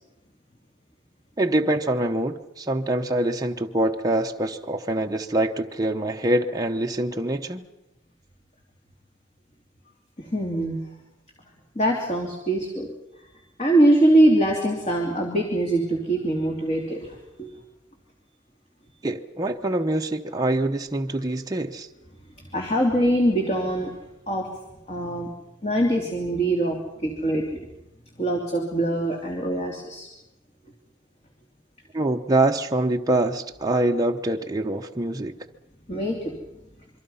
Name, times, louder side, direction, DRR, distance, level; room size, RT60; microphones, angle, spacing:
voice 1, 1.4-7.6 19.0-21.9 31.9-35.3, right 1 dB, 20° right, 2 dB, 0.9 m, -24 dB
voice 2, 10.2-10.8 11.7-12.9 13.6-17.5 22.4-23.9 24.3-24.5 24.9-25.3 25.6-27.6 28.2-30.1 35.9-36.4, right 1 dB, 35° left, 0 dB, 3.0 m, -23 dB
27.0 x 23.5 x 5.7 m, 0.92 s
head